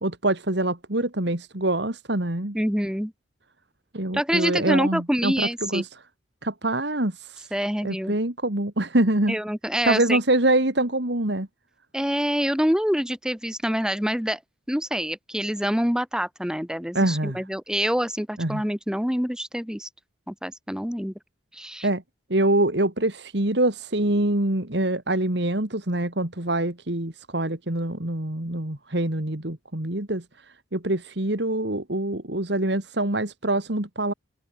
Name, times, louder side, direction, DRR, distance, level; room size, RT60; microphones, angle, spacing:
voice 1, 0.0-2.6 3.9-5.9 6.4-7.5 7.8-9.4 9.8-11.5 16.9-17.4 18.4-18.6 21.8-22.0 22.3-34.1, right 1 dB, 60° right, 2.5 m, -25 dB
voice 2, 2.5-3.1 4.1-5.8 7.5-8.1 9.3-10.2 11.9-14.4 14.7-19.9 20.3-21.1 21.5-21.9, equal, 5° right, 1.7 m, -26 dB
head